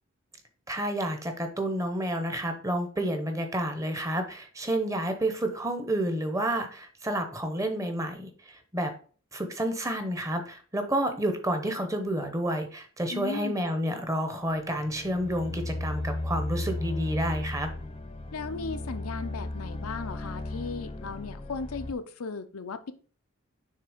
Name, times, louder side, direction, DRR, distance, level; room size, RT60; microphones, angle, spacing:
voice 1, 0.7-8.9 9.3-17.7, right 1 dB, 15° right, 0.8 m, -30 dB
voice 2, 13.1-13.6 18.3-22.9, left 4 dB, 85° left, 0.6 m, -36 dB
sound 1, 14.5-21.9, left 2 dB, 25° left, 0.6 m, -35 dB
6.6 x 3.4 x 4.9 m
head